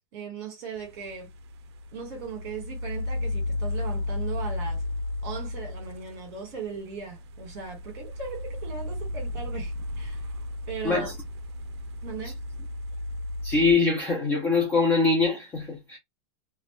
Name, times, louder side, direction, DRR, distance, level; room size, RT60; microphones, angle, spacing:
voice 1, 0.1-1.3 1.9-4.8 5.2-10.2 10.7-11.1 12.0-12.4, right 5 dB, 40° right, 1.3 m, -38 dB
sound 1, 0.8-13.7, left 2 dB, 75° right, 0.4 m, -34 dB
voice 2, 13.4-16.0, left 4 dB, 10° left, 0.4 m, -23 dB
2.3 x 2.0 x 3.0 m
supercardioid pair, 180°, 14 cm